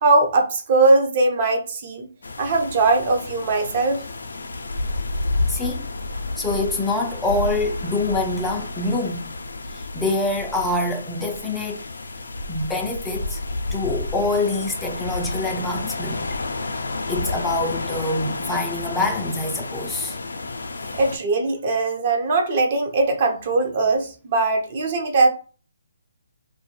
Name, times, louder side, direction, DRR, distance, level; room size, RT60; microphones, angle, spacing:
voice 1, 0.0-2.1 2.4-4.0 20.9-25.3, right 3 dB, 40° right, 0.6 m, -20 dB
sound 1, 2.2-21.2, left 2 dB, 75° left, 0.4 m, -30 dB
voice 2, 5.5-5.9 6.4-9.3 9.7-11.8 12.5-13.4 13.7-16.3 17.1-20.2, left 2 dB, 5° left, 0.3 m, -25 dB
2.1 x 2.1 x 3.1 m
figure-of-eight pair, 145°, 0 cm